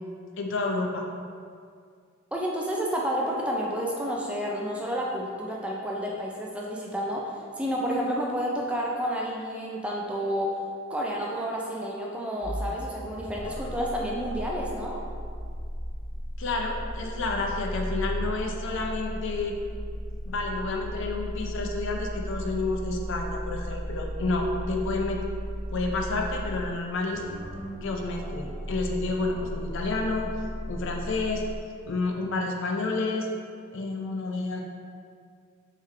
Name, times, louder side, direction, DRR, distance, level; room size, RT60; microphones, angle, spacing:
voice 1, 0.4-1.0 16.4-19.5 20.3-25.2 25.7-27.2 27.8-30.3 30.7-31.4 31.9-33.3 33.7-34.6, left 3 dB, 60° left, 2 dB, 0.5 m, -30 dB
voice 2, 2.3-7.2 7.6-10.5 10.9-15.0, equal, 5° right, -3 dB, 0.3 m, -30 dB
sound 1, 12.4-31.6, equal, 75° right, 1.1 m, -35 dB
3.6 x 3.4 x 3.2 m, 2.2 s
head